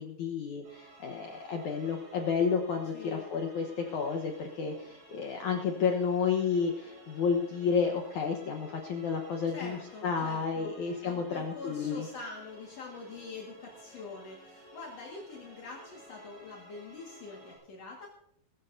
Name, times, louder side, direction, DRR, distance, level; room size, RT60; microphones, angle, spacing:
voice 1, 0.0-12.1, left 6 dB, 80° left, 2 dB, 1.7 m, -31 dB
sound 1, 0.6-17.6, right 1 dB, 75° right, 9.6 m, -54 dB
voice 2, 2.9-3.3 9.5-10.8 11.0-18.1, left 3 dB, 50° left, -2 dB, 2.1 m, -45 dB
22.0 x 13.5 x 2.7 m, 0.77 s
omnidirectional pair, 5.2 m